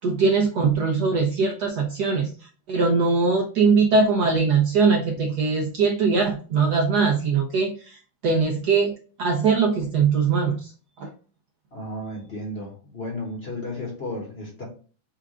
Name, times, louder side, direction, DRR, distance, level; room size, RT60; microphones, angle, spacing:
voice 1, 0.0-2.3 2.7-8.9 9.2-10.7 11.0-11.1, right 4 dB, 70° right, 3 dB, 0.9 m, -21 dB
voice 2, 11.7-14.7, left 1 dB, 40° left, -1 dB, 1.1 m, -33 dB
4.6 x 2.4 x 4.8 m, 0.39 s
omnidirectional pair, 2.3 m